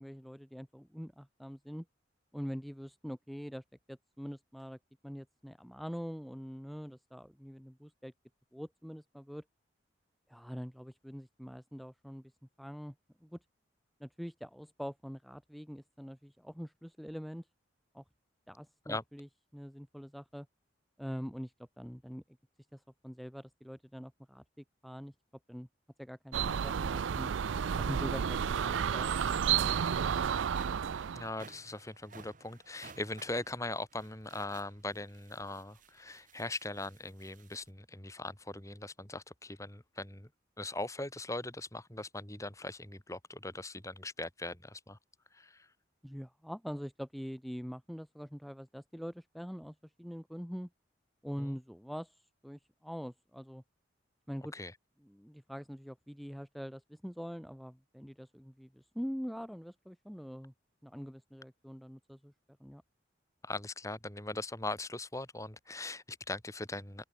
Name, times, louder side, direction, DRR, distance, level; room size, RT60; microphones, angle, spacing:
voice 1, 0.0-1.8 2.3-4.8 5.0-8.1 8.5-9.4 10.3-12.3 12.6-12.9 13.2-13.4 14.0-17.5 17.9-18.0 18.5-20.5 21.0-22.2 22.7-25.1 25.5-25.7 26.0-27.3 27.8-29.8 46.0-50.7 51.2-53.6 54.3-54.5 55.0-60.5 60.8-62.3 62.6-62.8, equal, ahead, 1.8 m, -44 dB
sound 1, 26.3-31.3, right 8 dB, 85° right, 0.4 m, -31 dB
sound 2, 30.5-37.7, right 4 dB, 45° right, 2.3 m, -56 dB
voice 2, 31.1-40.3 40.6-45.0 45.3-45.7 51.4-51.6 54.5-54.7 63.4-67.0, left 2 dB, 15° left, 3.4 m, -40 dB
open air
head